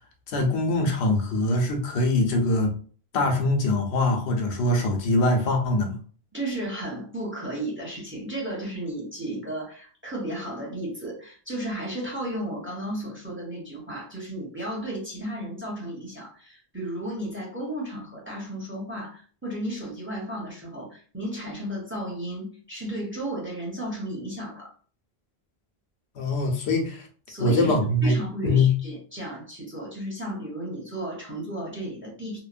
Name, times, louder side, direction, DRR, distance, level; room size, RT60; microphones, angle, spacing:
voice 1, 0.3-2.7 3.1-6.0 26.2-27.1 27.4-28.2 28.4-28.7, left 2 dB, 85° left, 3 dB, 0.9 m, -23 dB
voice 2, 6.3-24.7 27.3-27.7 28.0-32.4, right 1 dB, 15° right, -3 dB, 0.7 m, -34 dB
2.9 x 2.1 x 2.5 m, 0.42 s
omnidirectional pair, 1.1 m